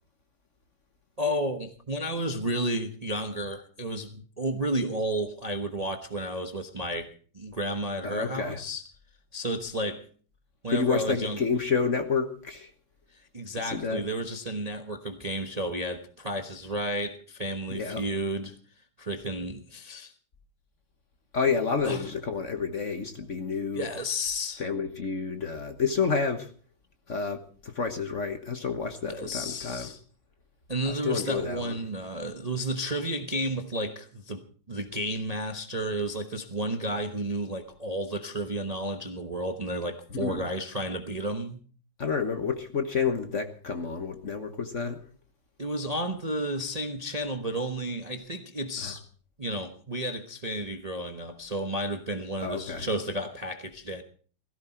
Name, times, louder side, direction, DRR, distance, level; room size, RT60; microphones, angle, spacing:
voice 1, 1.2-8.8 9.3-10.0 10.6-11.4 13.3-18.6 19.0-20.1 21.8-22.0 23.7-24.6 29.1-30.0 30.7-34.4 34.7-41.6 45.6-49.0 49.4-54.0, right 1 dB, 25° right, 0.9 m, -32 dB
voice 2, 8.0-8.6 10.7-12.7 13.6-14.0 17.7-18.0 21.3-23.9 24.6-26.5 27.1-29.9 30.9-31.8 40.1-40.5 42.0-45.0 48.8-48.9 52.4-52.9, left 5 dB, 40° left, 1.4 m, -29 dB
17.5 x 15.5 x 4.5 m
omnidirectional pair, 2.2 m